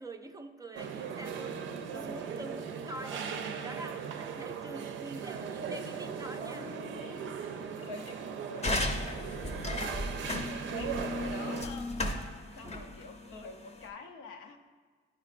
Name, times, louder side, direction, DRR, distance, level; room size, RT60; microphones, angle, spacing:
voice 1, 0.0-7.3 12.4-12.9, right 1 dB, 20° right, 6 dB, 0.4 m, -46 dB
sound 1, 0.8-11.7, right 7 dB, 75° right, 0.5 m, -38 dB
voice 2, 6.9-9.3 10.2-12.1 12.6-14.6, left 4 dB, 90° left, 4 dB, 0.6 m, -48 dB
sound 2, 8.6-13.9, left 1 dB, 35° left, 0.7 m, -35 dB
9.4 x 4.5 x 2.5 m, 1.5 s
cardioid pair, 90°, 20 cm